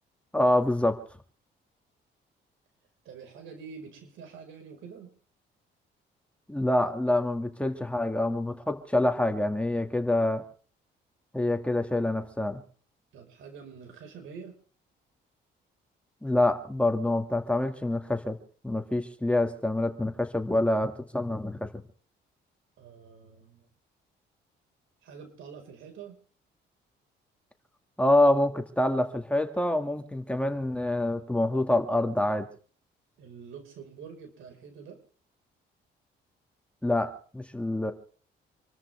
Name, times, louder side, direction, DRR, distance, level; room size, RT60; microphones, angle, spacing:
voice 1, 0.3-1.0 6.5-10.4 11.3-12.6 16.2-18.4 18.6-21.7 28.0-32.5 36.8-37.9, left 1 dB, 5° left, 5 dB, 2.1 m, -26 dB
voice 2, 3.1-5.1 13.1-14.6 22.8-23.7 25.0-26.2 33.2-35.0, right 6 dB, 80° right, 5 dB, 5.1 m, -46 dB
27.5 x 13.5 x 3.5 m, 0.43 s
cardioid pair, 90°, 20 cm